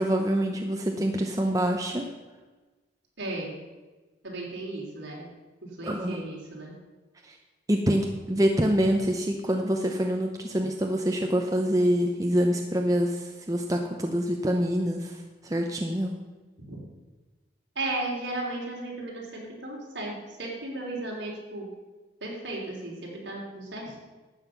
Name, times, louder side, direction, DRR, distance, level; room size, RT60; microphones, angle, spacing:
voice 1, 0.0-2.1 5.8-6.2 7.2-7.4 7.7-16.1, equal, 20° right, 2 dB, 0.7 m, -26 dB
voice 2, 3.2-3.5 4.2-5.3 5.6-6.7 16.7-16.8 17.8-21.7 22.2-24.0, right 2 dB, 65° right, -2 dB, 3.5 m, -35 dB
12.5 x 8.0 x 5.7 m, 1.2 s
head